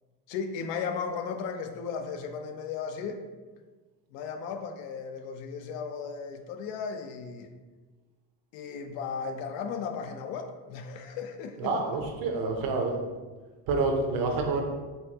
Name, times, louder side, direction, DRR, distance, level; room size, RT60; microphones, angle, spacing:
voice 1, 0.3-3.2 4.1-7.5 8.5-11.7, left 6 dB, 85° left, 6 dB, 0.6 m, -35 dB
voice 2, 11.6-13.0 13.7-14.6, right 3 dB, 50° right, 2 dB, 0.8 m, -28 dB
5.6 x 2.7 x 2.8 m, 1.3 s
cardioid pair, 145°, 43 cm